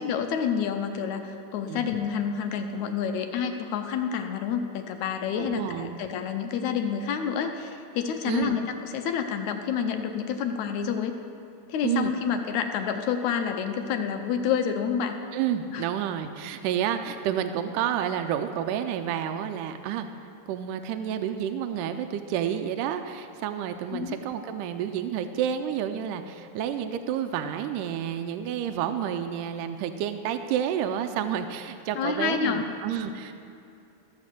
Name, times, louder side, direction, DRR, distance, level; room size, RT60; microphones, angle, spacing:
voice 1, 0.0-11.2 11.7-15.2 15.7-15.9 23.9-24.2 32.0-32.6, left 7 dB, 75° left, 6 dB, 1.9 m, -28 dB
voice 2, 5.4-6.0 8.2-8.6 11.8-12.1 15.3-20.1 20.5-33.3, right 9 dB, 80° right, 7 dB, 2.1 m, -30 dB
14.5 x 7.2 x 7.5 m, 2.6 s
omnidirectional pair, 3.9 m